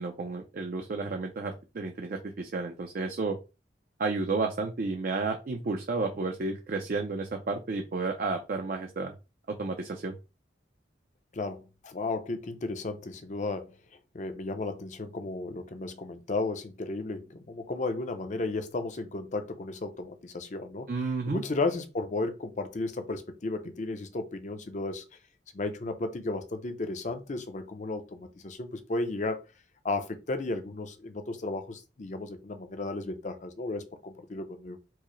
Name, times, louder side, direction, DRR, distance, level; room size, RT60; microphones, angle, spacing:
voice 1, 0.0-3.4 4.0-9.1 9.6-10.2 20.9-21.4, right 3 dB, 50° right, 0.4 m, -32 dB
voice 2, 11.3-13.7 14.1-25.0 25.5-29.4 29.8-34.8, left 2 dB, 40° left, 0.5 m, -34 dB
4.5 x 2.0 x 3.1 m
head